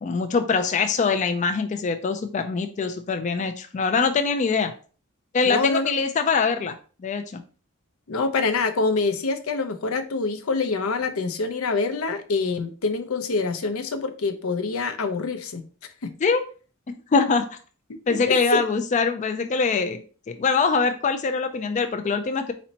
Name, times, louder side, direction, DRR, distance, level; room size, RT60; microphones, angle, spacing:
voice 1, 0.0-4.7 5.3-6.7 7.0-7.4 16.2-16.4 16.9-17.6 18.1-20.0 20.3-22.5, left 4 dB, 35° left, 0.4 m, -23 dB
voice 2, 5.5-5.9 8.1-15.6 16.0-16.1 18.1-18.6, left 3 dB, 80° left, 0.6 m, -25 dB
4.1 x 4.1 x 2.8 m
head